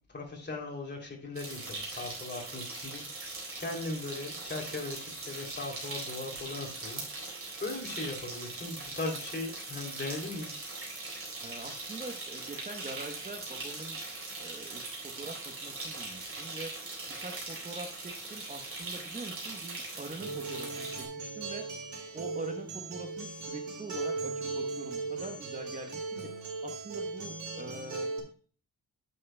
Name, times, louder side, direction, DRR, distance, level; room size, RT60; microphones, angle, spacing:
voice 1, 0.1-7.0 7.6-10.5, left 2 dB, 35° left, 1 dB, 2.9 m, -38 dB
sound 1, 1.4-21.0, right 3 dB, 45° right, 4.1 m, -41 dB
voice 2, 11.4-14.0 14.4-16.9 17.2-21.7 22.1-28.1, right 2 dB, 25° right, 5 dB, 1.0 m, -44 dB
Acoustic guitar, 20.2-28.2, right 3 dB, 65° right, 2.3 m, -37 dB
9.7 x 8.5 x 2.2 m, 0.42 s
wide cardioid pair, 110°, 31 cm